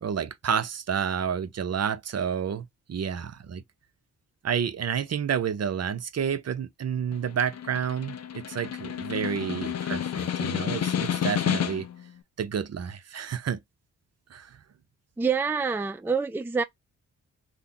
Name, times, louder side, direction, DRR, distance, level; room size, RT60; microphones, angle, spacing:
voice 1, 0.0-3.6 4.4-11.9 12.4-13.6 14.3-14.5, right 7 dB, 45° right, 0.6 m, -30 dB
Snare drum, 7.1-12.0, left 9 dB, 45° left, 0.5 m, -30 dB
voice 2, 15.2-16.6, right 5 dB, 5° right, 0.4 m, -26 dB
2.8 x 2.1 x 3.8 m
supercardioid pair, 40°, 35 cm